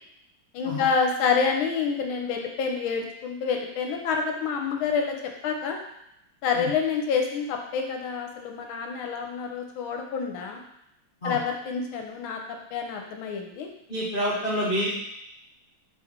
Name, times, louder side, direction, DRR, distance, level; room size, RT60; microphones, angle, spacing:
voice 1, 0.5-5.8 6.4-10.6 11.2-12.4 12.7-13.7, left 5 dB, 75° left, 3 dB, 1.4 m, -28 dB
voice 2, 13.9-14.9, equal, 60° left, -7 dB, 0.5 m, -27 dB
4.7 x 3.1 x 3.6 m, 0.79 s
omnidirectional pair, 2.3 m